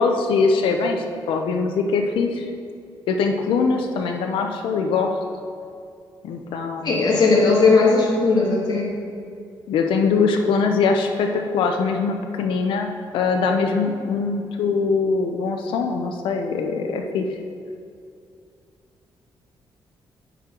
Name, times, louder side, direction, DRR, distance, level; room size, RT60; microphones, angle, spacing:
voice 1, 0.0-2.4 3.1-5.1 6.2-7.0 9.7-12.9 13.1-17.2, left 4 dB, 90° left, 4 dB, 0.6 m, -22 dB
voice 2, 6.8-8.9, left 3 dB, 55° left, -2 dB, 1.6 m, -17 dB
9.9 x 4.4 x 3.8 m, 2.4 s
cardioid pair, 125°, 9 cm